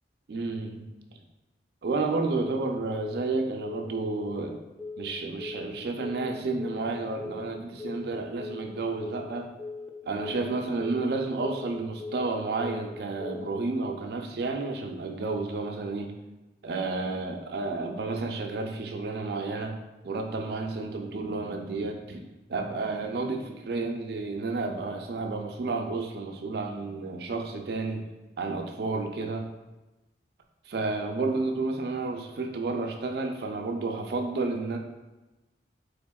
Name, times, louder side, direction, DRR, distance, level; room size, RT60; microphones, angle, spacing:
voice 1, 0.3-0.8 1.8-4.6 5.0-9.5 10.0-16.1 16.6-19.8 20.0-28.0 28.4-29.5 30.7-34.8, right 3 dB, 60° right, 3 dB, 0.4 m, -31 dB
Telephone, 2.4-2.7 3.0-3.3 3.6-3.9 4.2-4.5 4.8-5.1 5.4-5.7 6.0-6.3 6.6-6.9 7.2-7.5 7.8-8.1 8.4-8.7 9.0-9.3 9.6-9.9 10.2-10.5 10.8-11.1 11.4-11.7 12.0-12.3 12.6-12.9 13.2-13.5, left 3 dB, 5° left, 0.4 m, -39 dB
3.6 x 3.4 x 2.2 m, 1.1 s
head